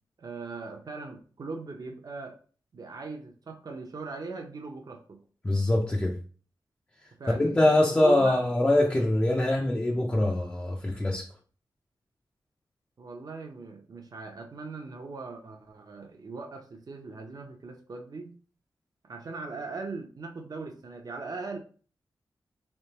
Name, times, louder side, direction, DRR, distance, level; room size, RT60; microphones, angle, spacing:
voice 1, 0.2-2.3 2.7-5.2 7.2-8.4 13.0-18.4 19.0-21.6, right 3 dB, 50° right, 0.6 m, -39 dB
voice 2, 5.4-6.2 7.3-11.3, left 1 dB, 15° left, 0.4 m, -24 dB
3.6 x 3.3 x 2.9 m
wide cardioid pair, 105°, 8 cm